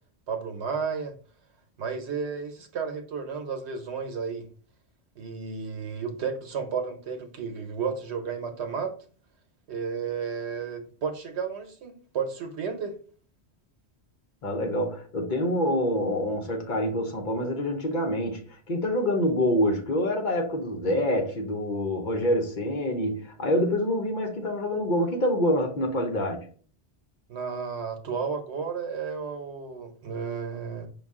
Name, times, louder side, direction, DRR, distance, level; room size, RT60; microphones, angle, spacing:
voice 1, 0.3-1.2 1.8-4.5 5.2-8.9 9.7-13.0 27.3-30.9, right 6 dB, 85° right, 1.1 m, -32 dB
voice 2, 14.4-26.5, left 1 dB, 50° left, 0.9 m, -26 dB
5.4 x 2.3 x 3.5 m
omnidirectional pair, 1.1 m